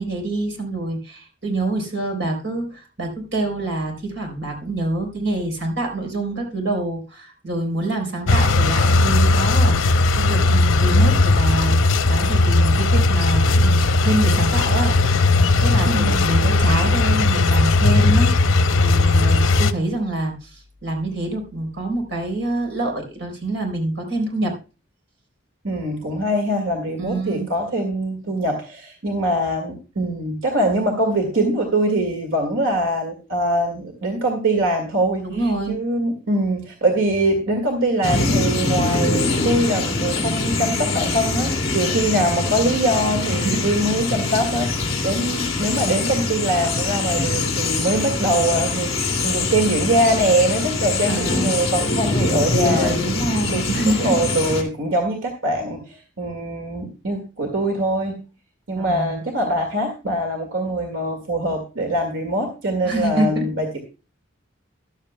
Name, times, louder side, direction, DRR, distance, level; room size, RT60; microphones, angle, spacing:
voice 1, 0.0-11.8 12.1-15.1 15.6-24.6 27.0-27.5 35.2-35.8 43.2-43.7 51.1-51.7 52.5-54.2 58.8-59.2 62.8-63.5, right 2 dB, 65° right, 2 dB, 3.8 m, -26 dB
sound 1, 8.3-19.7, left 2 dB, 90° left, 0.7 m, -17 dB
voice 2, 15.9-16.4 25.6-35.3 35.7-58.2 58.7-63.8, right 1 dB, 85° right, 3 dB, 2.0 m, -23 dB
sound 2, 38.0-54.6, left 3 dB, 30° left, 2.3 m, -23 dB
14.0 x 12.0 x 2.2 m, 0.31 s
head